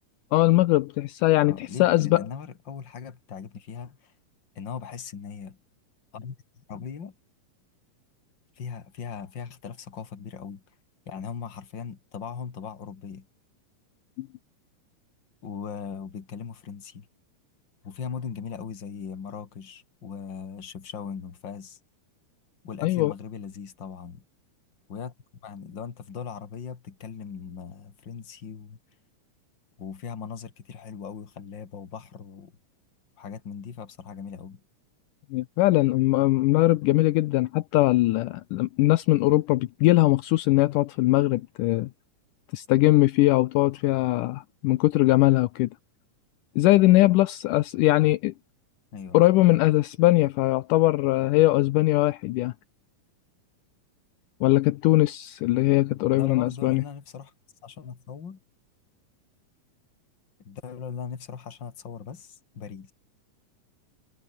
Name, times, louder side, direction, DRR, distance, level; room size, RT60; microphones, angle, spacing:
voice 1, 0.3-2.2 14.2-14.3 22.8-23.1 35.3-41.9 42.5-45.7 46.6-48.3 49.1-52.5 54.4-56.8, left 18 dB, 75° left, 2.2 m, -21 dB
voice 2, 1.5-4.1 4.5-5.6 6.1-7.1 8.6-10.6 11.1-13.3 15.4-17.1 17.8-21.8 22.6-24.2 24.9-25.1 25.4-28.8 29.8-32.5 33.2-34.6 48.9-49.2 55.7-55.8 56.1-57.3 57.6-58.4 60.4-62.9, left 6 dB, 35° left, 2.6 m, -39 dB
omnidirectional pair, 3.9 m